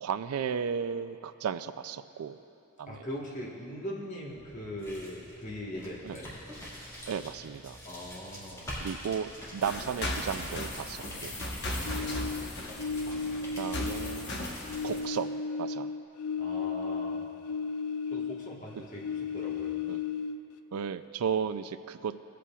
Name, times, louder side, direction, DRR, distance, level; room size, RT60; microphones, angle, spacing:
voice 1, 0.0-2.4 2.8-3.0 6.0-6.2 7.1-7.8 8.8-11.3 13.6-14.4 14.8-15.9 19.9-20.0 20.7-22.1, right 7 dB, 90° right, 12 dB, 0.4 m, -34 dB
voice 2, 2.9-6.3 7.8-8.7 11.8-12.5 16.4-17.2 18.1-19.8, equal, 35° left, -4 dB, 1.5 m, -41 dB
sound 1, 4.3-15.2, equal, 15° left, 2.0 m, -46 dB
sound 2, 9.6-15.0, left 1 dB, 50° left, 1.2 m, -37 dB
sound 3, 11.8-14.4 14.6-18.6 18.9-20.6, left 5 dB, 90° left, 0.4 m, -34 dB
18.0 x 8.4 x 2.4 m, 2.8 s
head